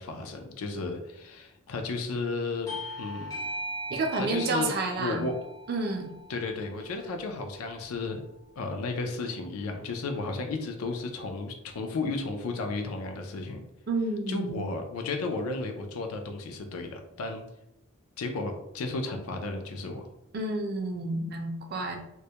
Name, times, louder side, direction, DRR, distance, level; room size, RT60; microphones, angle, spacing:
voice 1, 0.0-3.4 4.2-4.7 5.0-5.4 6.3-8.2 8.6-13.6 14.3-17.4 18.2-20.1, left 3 dB, 85° left, 4 dB, 0.4 m, -33 dB
Bell / Doorbell, 2.7-7.7, equal, 15° left, 0.4 m, -40 dB
voice 2, 3.9-5.3 5.7-6.1 13.9-14.6 20.3-22.0, right 3 dB, 45° right, 3 dB, 0.4 m, -30 dB
2.2 x 2.1 x 2.8 m, 0.88 s
head